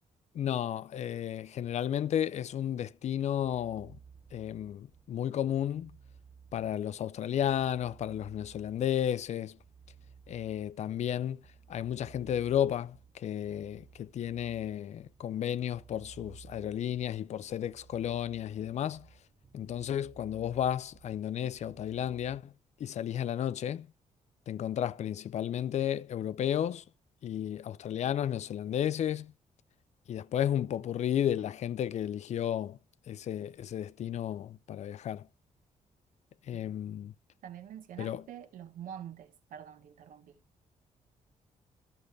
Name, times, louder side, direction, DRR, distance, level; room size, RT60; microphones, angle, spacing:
voice 1, 0.3-4.0 4.3-5.9 6.5-9.6 10.3-11.4 11.7-19.1 19.5-22.5 22.8-23.9 24.5-26.8 27.2-29.3 30.1-32.8 33.1-35.3 36.5-37.1 38.0-38.3, left 10 dB, 60° left, 0.5 m, -33 dB
sound 1, 3.4-22.4, right 6 dB, 25° right, 0.7 m, -57 dB
voice 2, 37.4-40.3, right 9 dB, 90° right, 1.3 m, -46 dB
13.5 x 6.5 x 3.3 m
cardioid pair, 125°, 13 cm